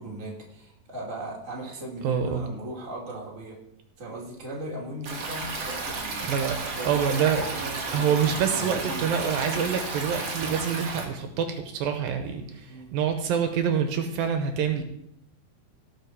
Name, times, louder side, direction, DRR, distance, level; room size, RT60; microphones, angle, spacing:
voice 1, 0.0-3.6 4.0-6.3 6.8-9.1 12.7-12.9, right 1 dB, 25° right, -2 dB, 2.5 m, -38 dB
voice 2, 2.0-2.5 6.2-7.4 7.9-14.8, right 7 dB, 80° right, 6 dB, 2.6 m, -26 dB
Stream, 5.0-11.0, right 3 dB, 45° right, 1.8 m, -32 dB
17.5 x 6.0 x 4.7 m, 0.75 s
omnidirectional pair, 4.2 m